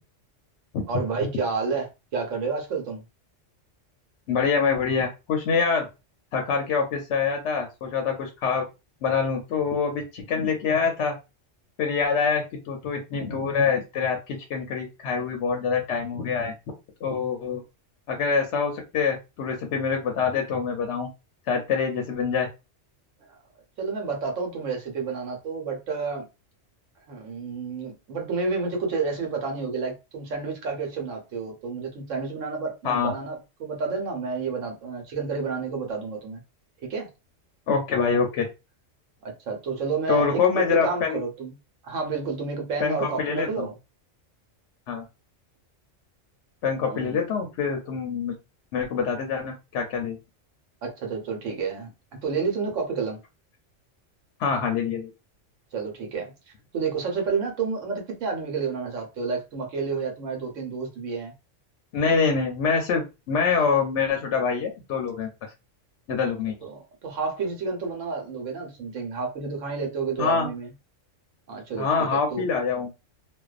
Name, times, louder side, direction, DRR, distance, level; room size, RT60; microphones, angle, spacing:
voice 1, 0.9-3.0 23.3-23.4 23.8-26.2 27.1-36.4 36.9-37.1 39.2-41.5 41.8-43.8 46.8-47.2 50.8-53.2 55.7-56.3 56.7-61.3 66.6-70.7 71.5-72.4, right 4 dB, 80° right, 1.1 m, -30 dB
voice 2, 4.3-5.9 6.3-8.7 9.0-11.1 11.8-16.5 17.0-17.6 18.1-21.1 21.5-22.5 32.8-33.1 37.7-38.5 40.1-41.2 42.8-43.7 44.9-45.0 46.6-48.3 48.7-50.2 54.4-55.1 61.9-65.3 66.1-66.6 70.2-70.5 71.8-72.9, left 5 dB, 70° left, 0.8 m, -25 dB
2.5 x 2.2 x 2.3 m
omnidirectional pair, 1.3 m